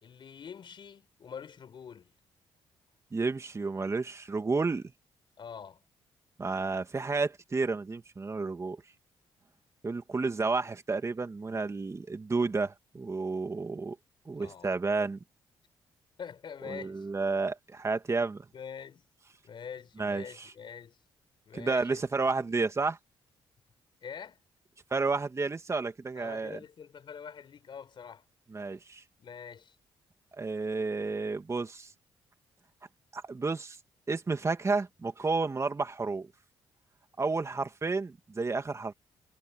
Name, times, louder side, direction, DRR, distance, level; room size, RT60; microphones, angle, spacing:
voice 1, 0.0-2.1 5.4-5.8 14.4-14.8 16.2-17.1 18.5-19.0 19.4-21.0 21.4-22.0 24.0-24.4 26.1-28.3 29.2-29.7, left 7 dB, 55° left, 5.0 m, -45 dB
voice 2, 3.1-4.9 6.4-8.8 9.8-14.0 14.3-15.2 16.7-18.5 20.0-20.5 21.5-23.0 24.9-26.6 28.5-29.0 30.4-31.9 33.1-33.8 34.1-36.3 37.2-38.9, right 3 dB, 30° right, 2.6 m, -31 dB
cardioid pair, 75°, 10 cm